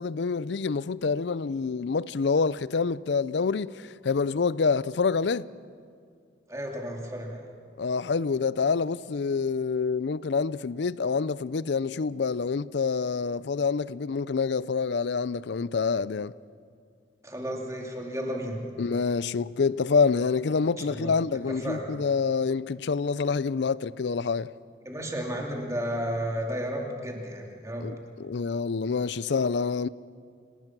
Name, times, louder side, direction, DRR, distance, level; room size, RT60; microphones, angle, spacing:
voice 1, 0.0-5.5 7.8-16.3 18.8-24.5 27.8-29.9, left 5 dB, 70° left, 0.5 m, -27 dB
voice 2, 6.5-7.5 17.2-18.6 20.8-21.1 21.5-21.9 24.8-27.9, equal, 15° right, 2.7 m, -33 dB
28.0 x 18.5 x 6.0 m
head